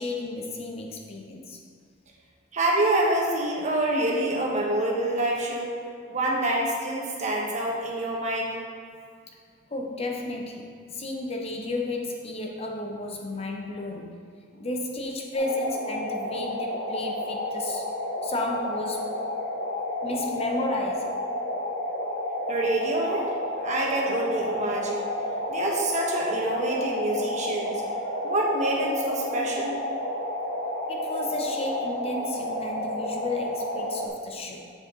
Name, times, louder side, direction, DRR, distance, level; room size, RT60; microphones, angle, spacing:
voice 1, 0.0-1.6 9.3-9.4 9.7-14.2 14.6-17.9 18.2-19.2 20.0-21.2 30.9-34.7, left 2 dB, 30° left, 1 dB, 0.7 m, -33 dB
voice 2, 2.5-5.7 6.1-8.6 14.5-14.6 22.5-25.1 25.5-27.8 28.2-29.8, right 1 dB, 40° right, -2 dB, 1.3 m, -26 dB
sound 1, 15.3-34.1, left 1 dB, 65° left, 1.3 m, -31 dB
7.5 x 7.3 x 3.8 m, 2.1 s
head